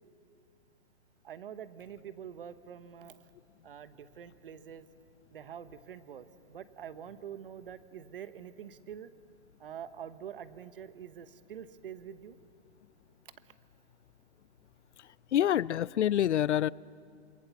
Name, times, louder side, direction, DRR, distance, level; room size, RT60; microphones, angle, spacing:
voice 1, 1.2-3.2 3.6-4.9 5.3-9.1 9.6-12.3 13.5-13.6, right 9 dB, 50° right, 1.1 m, -46 dB
voice 2, 15.3-16.7, left 11 dB, 90° left, 0.5 m, -26 dB
27.5 x 22.5 x 7.0 m
hypercardioid pair, 165°, 34 cm